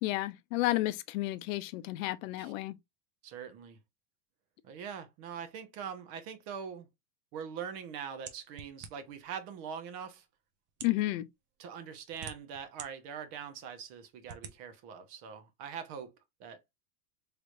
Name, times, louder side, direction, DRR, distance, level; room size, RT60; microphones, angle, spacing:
voice 1, 0.0-2.7 10.8-11.3, left 17 dB, 55° left, 0.6 m, -31 dB
voice 2, 3.2-3.8 4.6-6.9 7.3-10.2 11.6-16.1 16.4-16.6, right 7 dB, 45° right, 0.8 m, -43 dB
sound 1, 8.3-9.2 10.0-10.1 10.7-11.0 11.8-12.9 13.4-13.5 14.2-14.6, right 7 dB, 25° right, 0.4 m, -46 dB
3.3 x 2.9 x 2.5 m
supercardioid pair, 120°, 48 cm